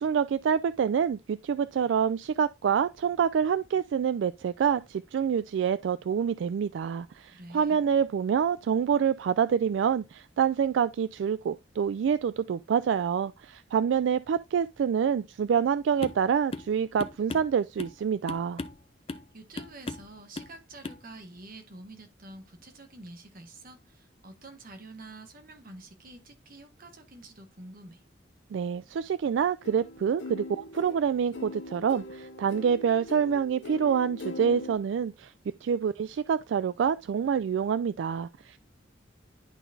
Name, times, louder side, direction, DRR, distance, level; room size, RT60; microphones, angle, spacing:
voice 1, 0.0-18.6 28.5-35.3 35.6-38.6, right 7 dB, 70° right, 0.3 m, -27 dB
voice 2, 7.3-7.8 19.1-28.0, right 2 dB, 50° right, 1.5 m, -48 dB
sound 1, 16.0-16.2 16.5-16.7 17.0-18.0 18.3-18.8 19.1-19.3 19.6-20.1 20.4-20.6 20.8-21.0, left 2 dB, 30° left, 0.6 m, -37 dB
sound 2, 29.6-34.8, left 2 dB, 75° left, 0.7 m, -41 dB
11.0 x 3.9 x 2.7 m
head